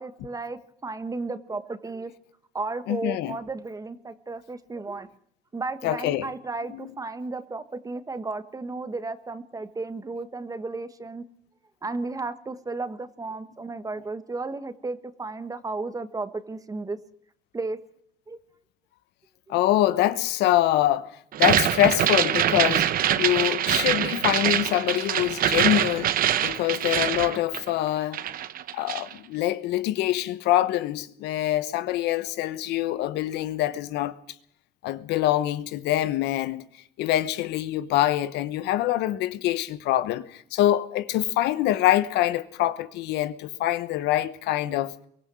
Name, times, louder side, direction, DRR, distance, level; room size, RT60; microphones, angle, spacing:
voice 1, 0.0-2.1 2.5-5.1 5.5-11.2 11.8-17.0 17.5-17.8 18.3-18.4 19.5-19.6, right 3 dB, 20° right, 1.4 m, -34 dB
voice 2, 2.9-3.4 5.8-6.3 6.8-6.9 19.5-21.1 21.4-22.9 23.2-26.1 26.4-28.2 28.7-34.1 34.8-36.6 37.0-44.9, left 14 dB, 85° left, 1.0 m, -24 dB
sound 1, 21.3-27.9 28.1-29.1, right 11 dB, 60° right, 0.9 m, -24 dB
23.0 x 15.0 x 7.6 m
cardioid pair, 110°, 17 cm